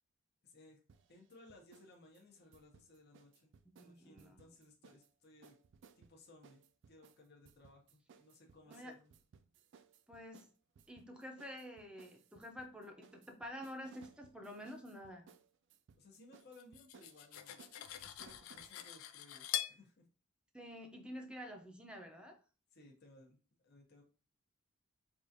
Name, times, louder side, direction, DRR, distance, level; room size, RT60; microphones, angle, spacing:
voice 1, 0.4-0.8 1.1-3.5 3.8-5.6 5.9-6.6 6.9-9.1 16.0-17.7 18.0-20.1 22.7-23.4 23.6-24.0, left 2 dB, 50° left, 0 dB, 0.8 m, -61 dB
sound 1, 0.9-1.9 2.1-5.1 5.4-18.8, right 6 dB, 60° right, 0.3 m, -63 dB
voice 2, 3.8-4.4 8.7-8.9 10.1-10.5 10.9-15.3 20.5-22.4, equal, 5° right, 3 dB, 0.6 m, -49 dB
Cutlery silverware, 16.6-19.8, left 12 dB, 80° left, 0.4 m, -43 dB
4.6 x 2.4 x 2.6 m, 0.35 s
head